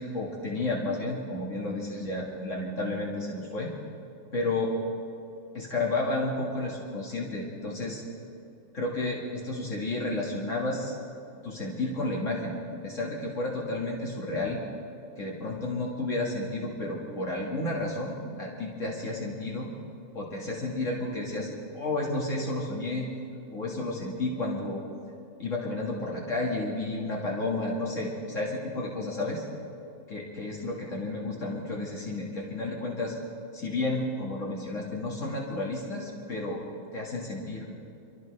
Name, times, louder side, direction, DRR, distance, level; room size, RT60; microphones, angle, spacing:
voice 1, 0.0-3.7 4.3-4.7 5.5-8.0 8.7-10.9 11.4-12.6 12.8-14.6 15.2-19.7 20.1-23.1 23.5-24.8 25.4-29.4 30.1-33.2 33.5-36.6 36.9-37.7, left 2 dB, 70° left, -3 dB, 2.3 m, -31 dB
27.5 x 13.5 x 3.3 m, 2.7 s
omnidirectional pair, 1.4 m